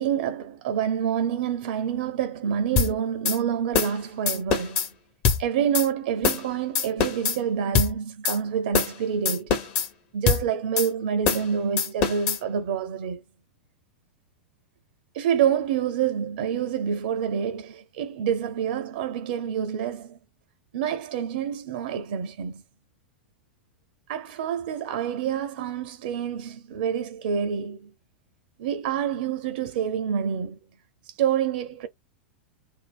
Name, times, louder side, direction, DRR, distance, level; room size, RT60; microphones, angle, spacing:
voice 1, 0.0-4.9 5.4-9.6 10.1-13.2 15.1-20.2 20.7-22.6 24.1-27.9 28.6-30.6 31.1-31.9, right 8 dB, 60° right, 0.5 m, -27 dB
sound 1, 2.8-2.9 3.2-3.4 3.7-4.0 4.3-4.9 5.2-5.4 5.7-5.9 6.2-6.5 6.7-7.4 7.7-7.9 8.2-8.4 8.7-9.0 9.2-9.9 10.3-10.4 10.8-10.9 11.2-11.5 11.8-12.4, left 6 dB, 45° left, 1.0 m, -23 dB
2.6 x 2.1 x 2.2 m
figure-of-eight pair, 95°, 6 cm